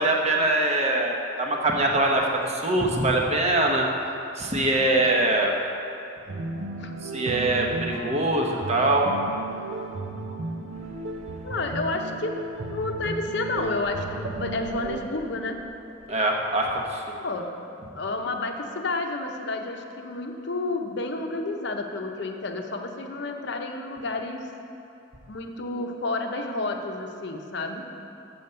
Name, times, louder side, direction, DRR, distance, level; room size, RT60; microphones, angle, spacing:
voice 1, 0.0-3.9 4.4-5.5 7.0-9.1 16.1-17.2, right 2 dB, 35° right, 0 dB, 0.9 m, -23 dB
sound 1, 6.3-15.0, right 2 dB, 75° right, 0.7 m, -34 dB
voice 2, 11.4-12.4 12.7-15.6 17.2-17.5 17.9-24.5 25.3-27.8, left 2 dB, 60° left, 4 dB, 0.7 m, -30 dB
7.0 x 6.9 x 6.7 m, 2.8 s
head